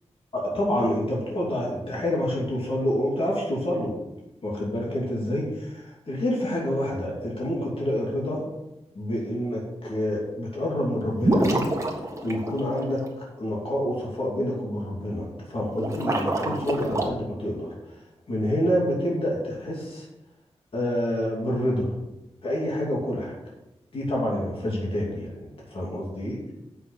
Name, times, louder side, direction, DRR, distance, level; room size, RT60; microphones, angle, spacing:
voice 1, 0.3-4.0 4.4-8.4 8.9-11.7 12.2-17.7 18.3-20.0 20.7-21.9 22.4-23.4 23.9-26.3, equal, 55° left, -4 dB, 2.8 m, -27 dB
sound 1, 11.2-13.0 15.7-17.1, right 1 dB, 25° right, 1.6 m, -26 dB
7.9 x 5.9 x 6.9 m, 0.94 s
wide cardioid pair, 110°, 11 cm